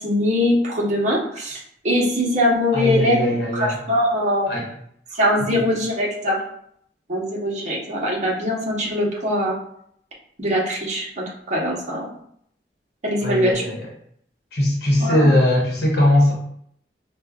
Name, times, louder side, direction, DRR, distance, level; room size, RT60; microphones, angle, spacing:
voice 1, 0.0-3.2 3.5-4.5 5.1-6.4 7.1-9.6 10.4-12.1 13.0-13.6 15.0-15.3, left 1 dB, 45° right, -3 dB, 0.9 m, -22 dB
voice 2, 2.7-3.8 4.5-4.7 13.2-13.8 14.5-16.3, left 1 dB, 65° left, -2 dB, 0.9 m, -19 dB
5.1 x 2.2 x 2.3 m, 0.67 s
head